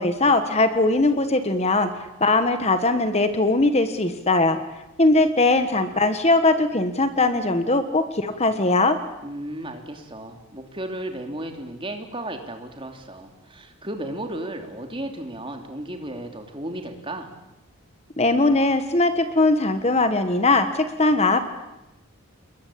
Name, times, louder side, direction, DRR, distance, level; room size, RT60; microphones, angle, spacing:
voice 1, 0.0-1.9 2.2-4.6 5.0-9.0 18.2-21.4, left 2 dB, 30° left, 9 dB, 1.4 m, -20 dB
voice 2, 9.2-17.3, right 1 dB, 25° right, 4 dB, 3.1 m, -34 dB
28.5 x 22.0 x 8.6 m, 0.94 s
head